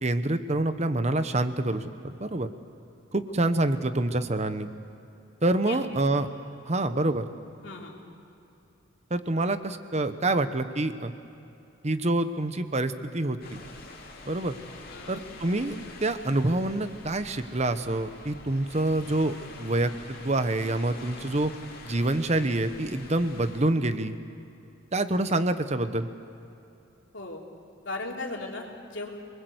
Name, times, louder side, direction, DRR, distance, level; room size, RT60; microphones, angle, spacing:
voice 1, 0.0-2.5 3.1-4.7 5.4-6.3 6.7-7.2 9.1-11.1 11.8-13.6 14.3-14.6 15.1-19.3 19.6-21.5 21.8-24.2 24.9-26.1, right 2 dB, 35° right, 10 dB, 1.1 m, -26 dB
voice 2, 7.6-8.0 14.9-15.2 27.1-27.4 27.8-29.1, left 2 dB, 65° left, -1 dB, 3.5 m, -36 dB
sound 1, 13.4-23.6, left 3 dB, 50° left, 3.4 m, -46 dB
28.5 x 20.5 x 8.1 m, 2.9 s
head